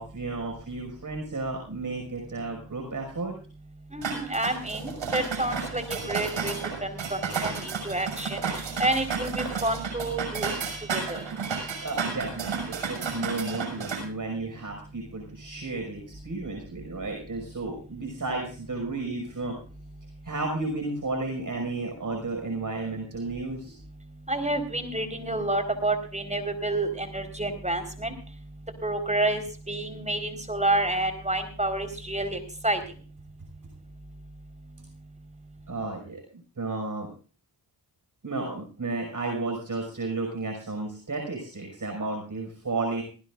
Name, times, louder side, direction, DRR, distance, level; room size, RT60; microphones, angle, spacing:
voice 1, 0.0-3.3 11.8-19.6 20.2-23.8 35.7-37.1 38.2-43.0, right 3 dB, 40° right, 1 dB, 5.6 m, -33 dB
voice 2, 3.9-6.5 6.8-8.5 8.8-10.5 10.9-11.2 24.3-28.1 28.8-32.8, right 2 dB, 15° right, 8 dB, 4.4 m, -29 dB
sound 1, 4.0-14.0, right 5 dB, 75° right, 6.0 m, -32 dB
19.5 x 16.5 x 2.5 m, 0.38 s
supercardioid pair, 45°, 46 cm